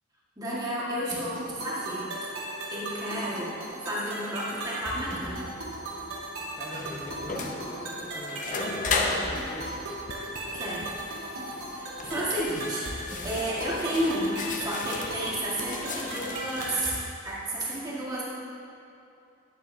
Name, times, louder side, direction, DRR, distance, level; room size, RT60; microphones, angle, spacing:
voice 1, 0.4-2.1 2.7-3.5 3.8-5.4 10.5-10.8 11.7-12.9 13.2-18.2, right 1 dB, 20° right, -7 dB, 1.6 m, -31 dB
sound 1, 1.1-17.1, right 1 dB, 85° right, 1.8 m, -37 dB
sound 2, 4.5-16.9, left 3 dB, 40° left, 0.6 m, -36 dB
voice 2, 6.5-9.0 9.2-9.9, left 1 dB, 20° left, -6 dB, 1.0 m, -43 dB
8.9 x 7.9 x 2.7 m, 2.6 s
head